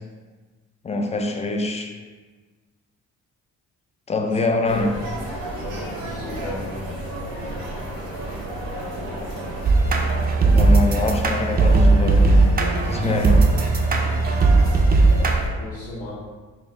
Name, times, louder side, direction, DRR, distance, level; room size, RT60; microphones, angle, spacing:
voice 1, 0.8-1.9 4.1-5.0 10.4-13.5, left 2 dB, 20° left, 4 dB, 0.4 m, -24 dB
sound 1, 4.6-15.5, right 1 dB, 85° right, 1.2 m, -32 dB
voice 2, 5.5-6.7 15.6-16.2, left 1 dB, 50° left, -5 dB, 0.9 m, -35 dB
sound 2, 9.6-15.4, right 3 dB, 30° right, 0.5 m, -17 dB
4.5 x 2.3 x 3.2 m, 1.4 s
cardioid pair, 90°, 30 cm